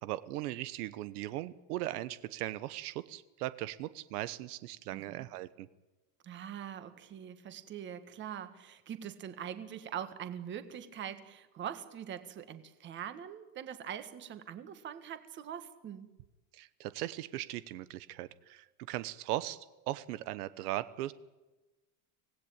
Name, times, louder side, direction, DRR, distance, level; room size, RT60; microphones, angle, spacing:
voice 1, 0.0-5.7 16.5-21.1, right 15 dB, 75° right, 15 dB, 1.2 m, -38 dB
voice 2, 4.9-5.3 6.2-16.1, right 9 dB, 25° right, 11 dB, 1.7 m, -43 dB
25.5 x 18.5 x 8.9 m, 1.1 s
cardioid pair, 175°, 47 cm